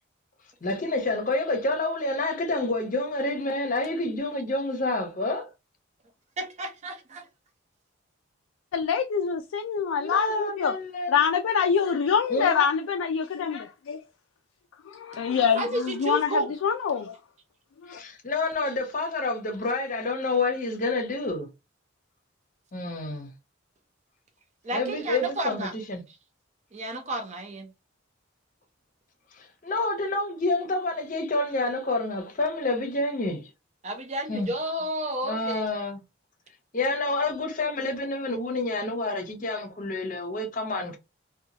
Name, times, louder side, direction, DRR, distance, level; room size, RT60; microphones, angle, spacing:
voice 1, 0.6-5.5 9.9-11.2 12.3-12.6 17.9-21.5 22.7-23.3 24.7-26.0 29.3-33.5 34.3-34.5 35.2-36.0 36.7-41.0, left 2 dB, 40° left, 0.7 m, -28 dB
voice 2, 6.4-7.3 15.1-15.2 15.5-16.5 24.6-25.7 26.7-27.7 33.8-35.7, right 1 dB, 35° right, 0.6 m, -31 dB
voice 3, 8.7-10.7 11.1-14.0 14.9-17.1 17.8-18.0, left 7 dB, 75° left, 0.3 m, -25 dB
2.8 x 2.3 x 2.8 m
head